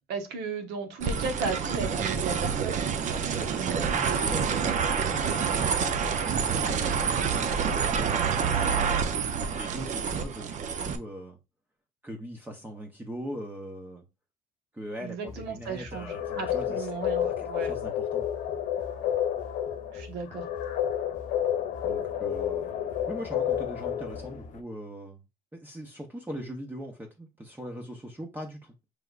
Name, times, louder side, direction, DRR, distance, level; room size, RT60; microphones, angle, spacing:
voice 1, 0.1-2.8 3.1-4.3 15.0-17.7 19.9-20.5, right 4 dB, 80° right, 1.0 m, -35 dB
sound 1, 1.0-11.0, right 6 dB, 45° right, 0.5 m, -27 dB
voice 2, 3.3-9.0 9.5-11.4 12.0-14.0 14.7-16.9 17.2-18.3 21.8-22.7 23.1-25.2 25.5-28.7, equal, 10° right, 0.7 m, -41 dB
sound 2, 15.3-24.6, left 4 dB, 50° left, 0.8 m, -47 dB
sound 3, 16.0-24.4, left 10 dB, 80° left, 0.8 m, -30 dB
4.8 x 3.3 x 2.4 m
cardioid pair, 110°, 17 cm